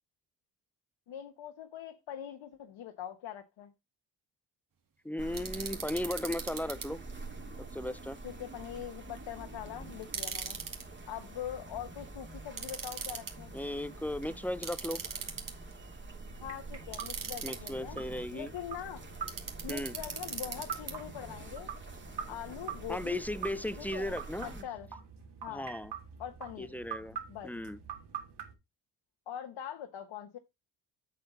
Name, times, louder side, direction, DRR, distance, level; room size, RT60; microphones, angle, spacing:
voice 1, 1.1-3.7 8.2-10.6 11.1-13.5 16.4-19.0 19.6-21.7 22.3-23.2 23.8-24.9 25.4-25.7 26.2-26.7 27.3-27.5 29.3-30.4, left 10 dB, 70° left, 1.3 m, -43 dB
voice 2, 5.0-7.0 7.7-8.2 13.5-15.0 17.4-18.5 19.7-19.9 22.9-24.6 25.5-25.9 26.6-27.2 27.4-27.8, left 1 dB, 5° left, 0.5 m, -36 dB
sound 1, 5.2-24.6, right 2 dB, 25° right, 2.3 m, -46 dB
sound 2, 5.3-6.9 10.0-10.8 12.6-13.3 14.6-15.7 16.9-17.7 19.3-20.9, right 6 dB, 45° right, 2.3 m, -39 dB
sound 3, 16.3-28.5, right 7 dB, 60° right, 3.1 m, -45 dB
7.8 x 6.7 x 4.0 m
cardioid pair, 95°, 45 cm